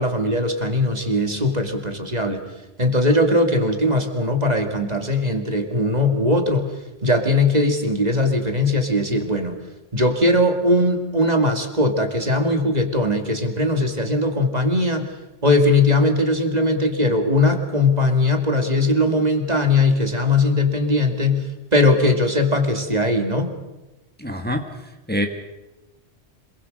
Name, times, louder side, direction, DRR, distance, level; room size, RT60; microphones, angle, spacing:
voice 1, 0.0-2.4 2.8-6.8 7.0-9.6 9.9-15.1 15.4-21.5 21.7-23.5, left 2 dB, 35° right, 4 dB, 2.4 m, -20 dB
voice 2, 24.2-24.6 25.1-25.3, equal, 10° left, 4 dB, 1.8 m, -24 dB
26.5 x 21.0 x 6.6 m, 1.0 s
omnidirectional pair, 1.2 m